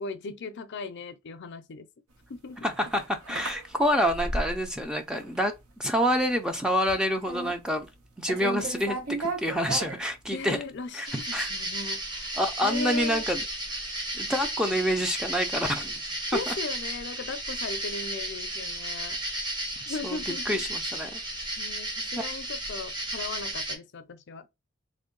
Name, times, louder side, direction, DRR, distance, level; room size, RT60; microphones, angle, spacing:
voice 1, 0.0-1.9 2.3-2.6 3.3-3.4 10.3-13.2 16.3-19.2 19.9-20.6 21.6-24.4, left 4 dB, 55° left, 0.5 m, -37 dB
sound 1, 2.3-4.8 5.1-5.7 6.0-6.3 6.6-8.0 8.3-10.6, right 3 dB, 75° right, 1.0 m, -35 dB
voice 2, 2.6-5.5 5.8-7.9 8.2-10.6 10.9-11.5 12.4-13.4 13.7-13.8 14.1-15.9 16.5-16.6 19.9-20.2 20.5-21.2 22.2-22.3, equal, 5° right, 0.4 m, -27 dB
sound 2, 11.0-23.7, right 1 dB, 20° right, 0.9 m, -34 dB
3.5 x 2.1 x 3.7 m
head